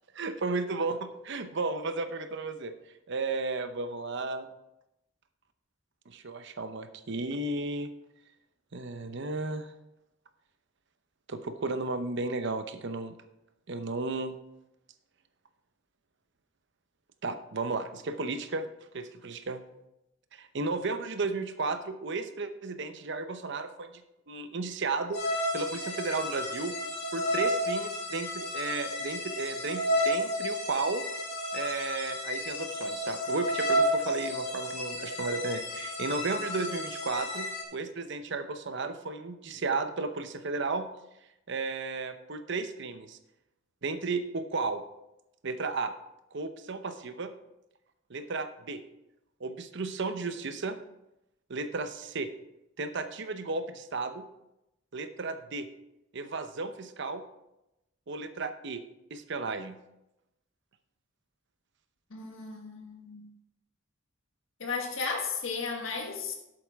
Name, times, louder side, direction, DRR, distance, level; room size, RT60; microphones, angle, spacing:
voice 1, 0.1-2.7 3.1-4.5 6.1-7.9 8.7-9.7 11.3-13.1 13.7-14.4 17.2-18.7 18.9-19.6 20.3-24.0 24.3-26.7 27.1-31.0 31.5-37.5 37.7-40.9 41.5-43.2 43.8-44.8 45.4-45.9 46.3-47.3 48.1-48.8 49.4-50.8 51.5-52.3 52.8-54.2 54.9-55.7 56.1-57.2 58.1-58.8 59.1-59.8, right 3 dB, 65° right, 9 dB, 0.8 m, -34 dB
sound 1, 25.1-37.6, equal, 60° left, 2.7 m, -32 dB
voice 2, 62.1-63.3 64.6-66.3, left 4 dB, 85° left, 2 dB, 1.6 m, -34 dB
11.5 x 8.0 x 3.6 m, 0.90 s
head